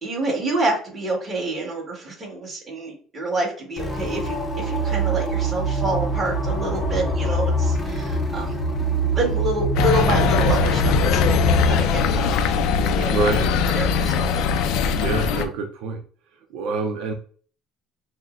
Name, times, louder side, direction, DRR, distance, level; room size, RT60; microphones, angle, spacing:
voice 1, 0.0-8.5 8.8-8.9 9.1-11.4 11.7-12.4 12.8-13.1 13.7-14.5, right 1 dB, 20° right, -3 dB, 1.8 m, -27 dB
sound 1, 3.8-11.8, right 2 dB, 20° left, 0.8 m, -24 dB
sound 2, 9.8-15.5, left 6 dB, 70° left, 0.4 m, -21 dB
voice 2, 13.1-13.5 15.0-16.0 16.5-17.1, right 4 dB, 75° right, 4 dB, 0.5 m, -26 dB
6.1 x 2.1 x 2.5 m, 0.44 s
cardioid pair, 135°, 0 cm